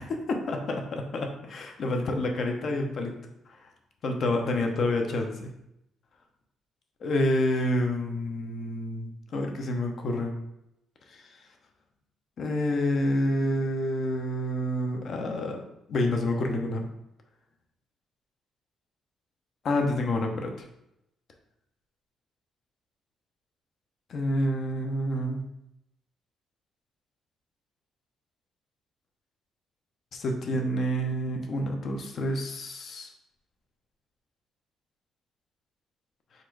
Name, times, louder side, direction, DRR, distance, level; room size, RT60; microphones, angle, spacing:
voice 1, 0.0-3.1 4.0-5.5 7.0-10.3 11.1-11.2 12.4-15.6 15.9-16.9 19.6-20.5 24.1-25.4 30.1-33.1, left 1 dB, 60° left, 3 dB, 0.7 m, -28 dB
4.0 x 2.6 x 4.6 m, 0.84 s
cardioid pair, 90°, 0 cm